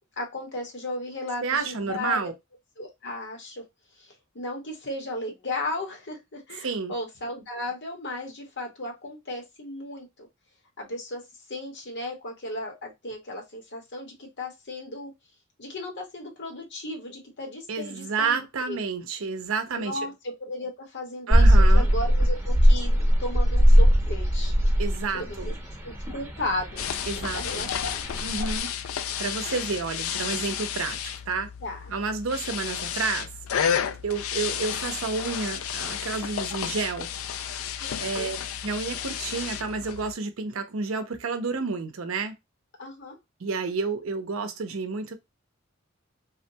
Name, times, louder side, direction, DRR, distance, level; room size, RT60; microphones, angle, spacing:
voice 1, 0.2-2.3 2.8-3.6 4.0-10.3 10.8-11.2 11.5-15.1 15.6-18.8 19.7-24.5 25.1-25.5 25.8-26.9 27.3-28.1 31.6-31.9 37.8-38.3 42.8-43.2, left 1 dB, 55° left, 1.3 m, -35 dB
voice 2, 1.4-2.3 6.6-6.9 17.7-20.0 21.3-21.9 24.8-25.5 27.1-27.7 28.2-28.7 29.2-31.5 31.9-33.3 34.0-37.1 38.0-38.4 38.6-42.4 43.4-45.2, right 4 dB, 70° right, 0.6 m, -30 dB
sound 1, 21.3-28.6, equal, 15° right, 1.0 m, -20 dB
sound 2, 26.8-40.1, left 8 dB, 75° left, 0.4 m, -32 dB
3.5 x 2.2 x 2.7 m
head